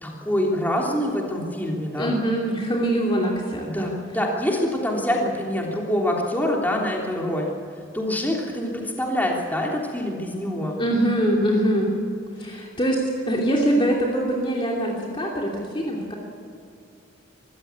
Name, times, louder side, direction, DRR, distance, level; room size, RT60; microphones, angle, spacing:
voice 1, 0.0-2.2 3.6-7.5 7.9-10.8 12.5-12.6, left 1 dB, 10° left, -1 dB, 3.3 m, -25 dB
voice 2, 2.0-3.7 10.8-11.9 12.4-16.2, right 1 dB, 25° left, -1 dB, 2.8 m, -23 dB
23.5 x 15.5 x 8.4 m, 2.6 s
head